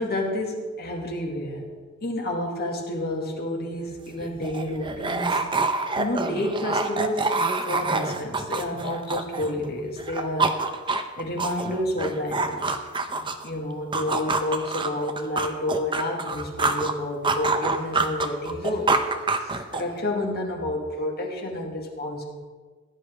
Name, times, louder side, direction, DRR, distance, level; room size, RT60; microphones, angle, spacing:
voice 1, 0.0-1.6 2.0-5.5 6.0-10.5 11.2-12.8 13.1-19.0 19.4-22.2, left 1 dB, 50° left, 0 dB, 2.4 m, -30 dB
sound 1, 3.8-3.9 4.2-9.7 10.0-13.5 13.9-16.9 17.2-20.0, right 3 dB, 25° right, 0.8 m, -26 dB
16.5 x 10.5 x 3.7 m, 1.4 s
head